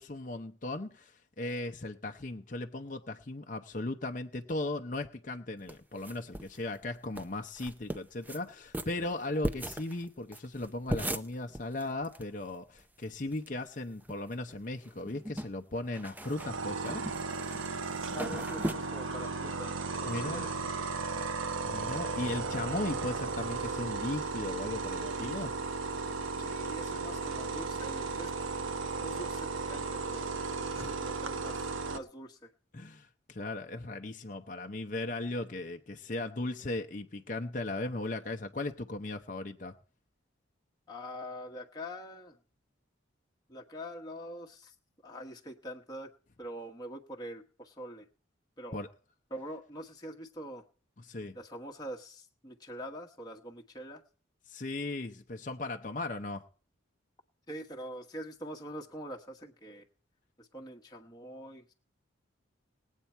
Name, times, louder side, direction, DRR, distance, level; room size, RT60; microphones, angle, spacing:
voice 1, 0.0-17.0 20.1-20.5 21.6-25.5 30.7-31.0 32.7-39.7 48.7-48.9 51.0-51.4 54.5-56.5, left 2 dB, 40° left, 4 dB, 0.7 m, -37 dB
sound 1, 5.7-6.6 6.8-6.9 7.1-7.3 7.6-8.4 8.7-12.2 12.5-12.6 12.8-13.5 13.9-14.5 14.8-18.7, right 1 dB, 10° right, 0.6 m, -38 dB
sound 2, 16.2-32.0, right 4 dB, 90° right, 1.2 m, -35 dB
voice 2, 18.1-20.7 26.4-28.3 29.0-30.3 30.6-32.5 40.9-42.4 43.5-44.7 45.0-46.1 46.4-48.1 48.6-48.8 49.3-50.6 51.3-54.0 57.5-59.8 60.4-61.7, equal, 20° left, 0 dB, 1.2 m, -44 dB
20.0 x 8.3 x 4.4 m, 0.41 s
head